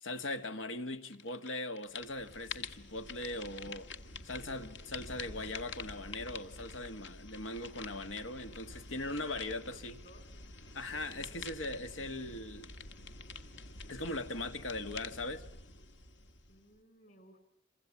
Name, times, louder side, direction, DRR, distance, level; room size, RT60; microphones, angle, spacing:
voice 1, 0.0-3.9 4.2-10.0 10.7-12.8 13.9-15.5, left 2 dB, 90° left, 1.7 m, -40 dB
sound 1, 1.1-1.5 1.8-16.8, left 4 dB, 70° left, 1.6 m, -47 dB
voice 2, 4.4-5.3 9.1-10.3 10.8-11.6 16.5-17.4, equal, 45° left, 5.6 m, -58 dB
28.0 x 24.5 x 7.2 m
head